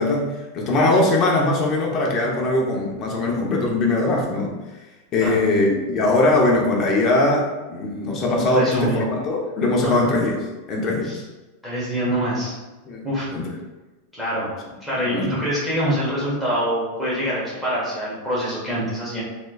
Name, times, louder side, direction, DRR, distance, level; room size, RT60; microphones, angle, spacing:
voice 1, 0.0-4.5 5.1-10.4 10.7-11.2 12.9-13.0 13.3-13.5 15.0-15.4, left 2 dB, 30° left, -1 dB, 0.7 m, -21 dB
voice 2, 8.5-9.0 9.8-10.1 11.0-11.1 11.6-12.6 13.0-13.3 14.1-14.5 14.8-19.2, equal, 5° right, -9 dB, 1.3 m, -25 dB
3.2 x 2.9 x 2.3 m, 1.1 s
supercardioid pair, 145°, 0 cm